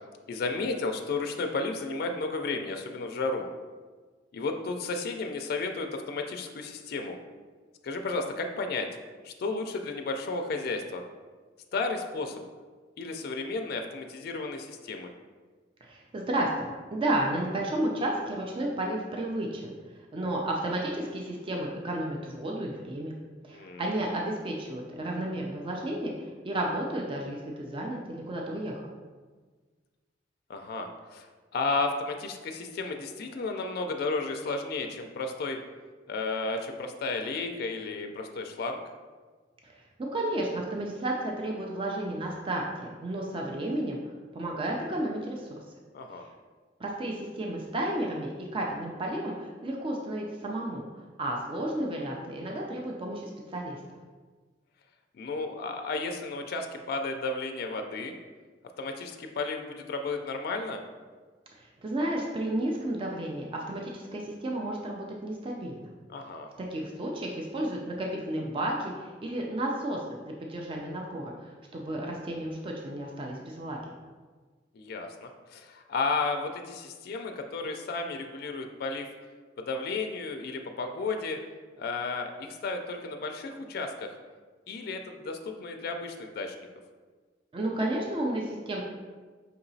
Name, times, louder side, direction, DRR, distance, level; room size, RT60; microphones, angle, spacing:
voice 1, 0.3-3.5 4.3-7.2 7.8-8.9 9.2-11.0 11.7-12.4 13.0-15.1 23.5-23.8 30.5-31.3 31.5-35.6 36.1-38.8 45.9-46.2 55.1-58.1 58.8-60.8 66.1-66.5 74.7-79.1 79.6-81.4 81.8-84.1 84.7-86.6, left 3 dB, 55° left, 4 dB, 0.3 m, -33 dB
voice 2, 15.8-19.7 20.1-23.2 23.4-28.8 39.6-39.7 40.1-44.0 44.3-45.6 46.2-46.3 46.8-50.8 51.2-54.0 61.6-65.9 66.6-73.8 87.5-88.8, right 1 dB, 30° right, -1 dB, 0.4 m, -32 dB
5.5 x 2.9 x 2.6 m, 1.4 s
head